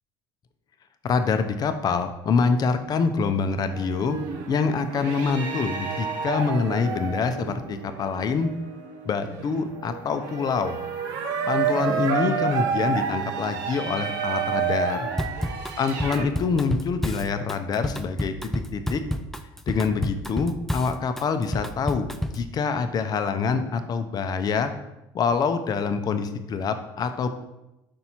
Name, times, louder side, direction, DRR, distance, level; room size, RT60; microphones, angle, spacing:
voice 1, 1.0-4.2 4.5-8.5 9.0-10.8 11.5-15.1 15.8-18.3 18.7-19.0 19.7-22.1 22.3-24.7 25.1-27.3, left 5 dB, 40° left, 9 dB, 0.6 m, -25 dB
sound 1, 3.7-16.2, right 6 dB, 85° right, 0.8 m, -30 dB
Drum kit / Drum, 15.2-22.5, left 1 dB, 5° left, 0.4 m, -30 dB
5.4 x 4.1 x 4.4 m, 0.94 s
supercardioid pair, 100°, 10 cm